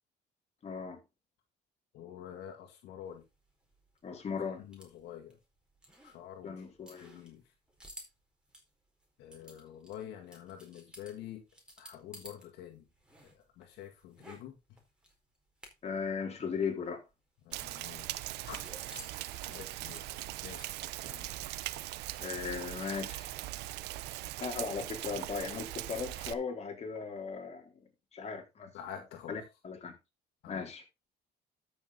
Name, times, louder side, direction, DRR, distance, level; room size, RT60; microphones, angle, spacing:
voice 1, 0.6-1.0 4.0-4.6 6.4-7.1 15.8-17.0 22.2-23.3 24.4-27.7 28.1-28.7 29.3-30.0 30.5-30.8, left 5 dB, 40° left, 3.8 m, -37 dB
voice 2, 1.9-3.2 4.6-5.4 6.0-6.6 7.0-7.5 9.2-11.4 11.8-12.8 13.2-14.6 17.4-18.1 18.4-18.7 19.0-20.1 20.4-20.8 21.0-21.3 28.7-29.5 30.4-30.7, left 10 dB, 80° left, 2.1 m, -47 dB
sound 1, 3.1-12.5 12.7-16.1 16.3-16.4 16.7-21.0, right 1 dB, 5° right, 4.4 m, -55 dB
Rain, 17.5-26.3, right 16 dB, 85° right, 0.7 m, -40 dB
13.0 x 6.4 x 4.0 m
cardioid pair, 110°, 17 cm